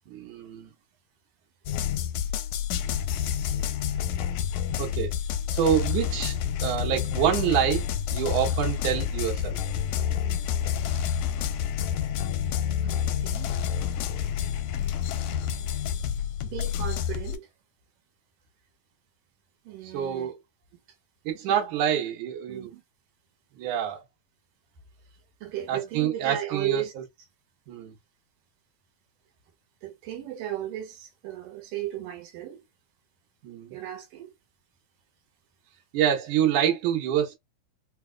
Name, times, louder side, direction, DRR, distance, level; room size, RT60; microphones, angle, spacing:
voice 1, 0.1-0.7 4.8-5.1 5.5-9.6 19.8-20.4 21.2-22.7 23.5-24.0 25.7-26.8 27.7-27.9 33.4-33.7 35.9-37.4, right 9 dB, 70° right, 2.6 m, -27 dB
sound 1, 1.7-17.4, left 9 dB, 80° left, 1.7 m, -28 dB
voice 2, 12.8-13.5 16.4-17.5 19.6-20.3 21.5-21.6 22.5-22.8 25.4-26.9 29.8-32.6 33.7-34.3, right 12 dB, 90° right, 2.8 m, -35 dB
5.3 x 2.3 x 2.2 m
omnidirectional pair, 3.7 m